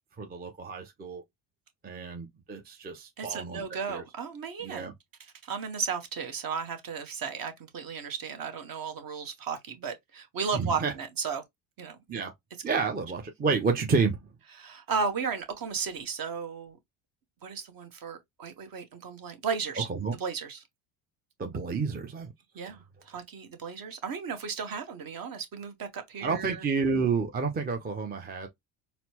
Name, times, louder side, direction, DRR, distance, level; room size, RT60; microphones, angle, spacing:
voice 1, 0.2-1.2 1.8-3.6 3.9-4.0 4.6-4.9 10.5-10.9 12.1-12.3 12.6-14.2 19.8-20.1 21.4-22.3 26.2-28.5, right 5 dB, 20° right, 0.6 m, -30 dB
voice 2, 3.2-4.9 5.4-11.4 11.8-12.0 14.6-16.8 17.4-19.9 20.2-20.6 22.5-26.6, right 5 dB, 45° right, 1.1 m, -34 dB
4.1 x 2.1 x 2.8 m
supercardioid pair, 75°, 49 cm